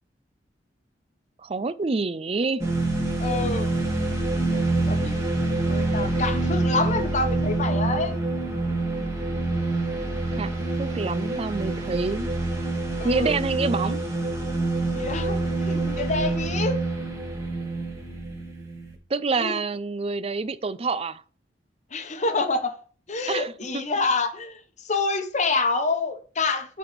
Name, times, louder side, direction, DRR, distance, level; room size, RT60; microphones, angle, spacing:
voice 1, 1.4-2.6 10.4-10.5 10.8-12.3 13.0-14.0 19.1-21.2 23.3-24.0, right 4 dB, 35° right, 0.4 m, -27 dB
sound 1, 2.6-18.9, right 2 dB, 15° right, 1.8 m, -26 dB
voice 2, 3.2-3.7 4.5-5.2 5.7-8.2 13.0-13.4 14.8-16.8 19.3-19.6 21.9-22.7 23.1-26.8, left 3 dB, 40° left, 1.0 m, -27 dB
8.4 x 4.2 x 5.1 m
head